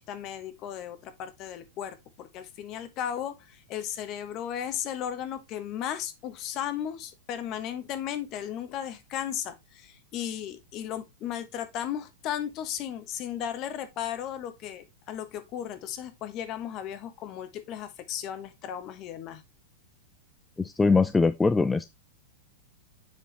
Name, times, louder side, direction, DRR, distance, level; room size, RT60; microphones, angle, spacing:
voice 1, 0.0-19.4, left 10 dB, 35° left, 1.2 m, -35 dB
voice 2, 20.6-21.9, left 4 dB, 10° left, 0.3 m, -22 dB
7.4 x 4.7 x 3.3 m
supercardioid pair, 145°, 0 cm